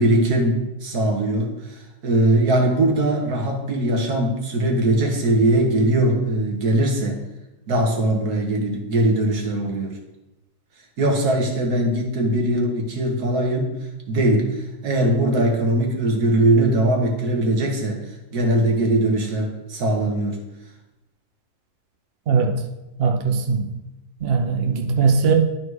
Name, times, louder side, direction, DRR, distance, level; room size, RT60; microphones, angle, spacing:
voice 1, 0.0-7.2 7.7-10.0 11.0-13.7 14.1-14.5 14.8-18.0 18.3-20.4, right 1 dB, 75° right, 2 dB, 1.9 m, -20 dB
voice 2, 22.3-22.6 23.0-23.7 24.2-25.3, right 5 dB, 50° right, 3 dB, 0.8 m, -20 dB
11.0 x 4.2 x 4.7 m, 0.96 s
omnidirectional pair, 1.7 m